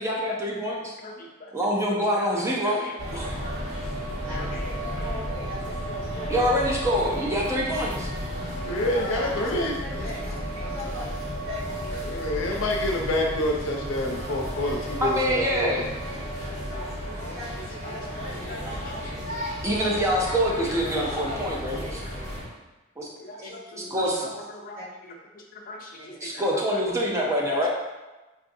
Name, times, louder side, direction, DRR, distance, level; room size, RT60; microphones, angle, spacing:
voice 1, 0.0-1.0 1.5-3.3 6.3-8.1 15.0-15.8 19.6-22.0 23.0-23.1 23.9-24.3 26.2-27.7, equal, 15° right, -3 dB, 0.6 m, -25 dB
voice 2, 1.0-1.5 1.9-2.9 4.3-4.7 5.0-5.1 12.1-12.6 16.7-17.3 17.8-19.2 20.1-20.4 20.7-21.1 23.2-23.6 24.2-24.8 25.5-26.4 26.7-27.6, left 2 dB, 45° left, 1 dB, 0.5 m, -41 dB
voice 3, 2.5-2.8 4.2-6.4 8.9-10.2 10.5-11.1 11.4-12.2 15.3-15.4 16.0-16.2 17.2-18.4 23.4-23.8 24.7-24.8 26.0-26.4, left 1 dB, 80° right, -8 dB, 1.4 m, -40 dB
sound 1, 3.0-22.4, equal, 40° right, 1.0 m, -33 dB
voice 4, 8.6-9.8 12.0-15.8, left 1 dB, 90° left, 0 dB, 0.6 m, -27 dB
4.8 x 2.5 x 2.6 m, 1.1 s
head